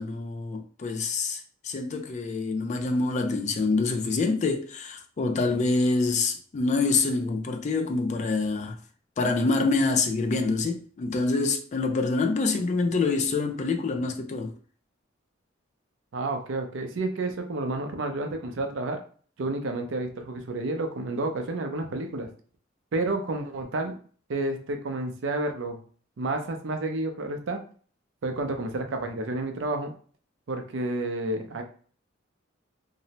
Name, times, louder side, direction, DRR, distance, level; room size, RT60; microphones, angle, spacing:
voice 1, 0.0-8.8 9.2-14.5, left 3 dB, 35° left, 0.3 m, -26 dB
voice 2, 16.1-19.0 19.4-22.3 22.9-24.0 24.3-25.8 26.2-27.6 28.2-29.9 30.5-31.6, right 2 dB, 70° right, 0.5 m, -30 dB
2.6 x 2.0 x 2.8 m
head